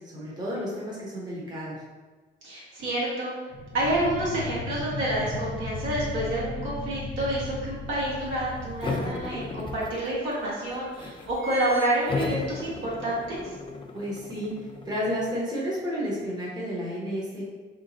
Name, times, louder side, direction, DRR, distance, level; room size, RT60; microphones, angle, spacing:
voice 1, 0.0-1.8 13.9-14.5 14.8-17.4, equal, 20° right, -6 dB, 1.0 m, -31 dB
voice 2, 2.4-3.3 3.7-13.4, right 1 dB, 75° right, -7 dB, 1.5 m, -28 dB
sound 1, 3.5-10.0, left 2 dB, 65° left, 0.7 m, -36 dB
sound 2, 7.2-7.3 7.7-8.9 9.6-9.7 9.9-10.0 10.7-10.9 11.1-13.0 13.4-13.5, right 1 dB, 50° right, 0.9 m, -39 dB
Spoon on Table, 8.8-10.3 10.7-11.4 12.1-15.4, left 3 dB, 25° left, 0.5 m, -35 dB
3.6 x 3.0 x 2.6 m, 1.4 s
cardioid pair, 90°, 20 cm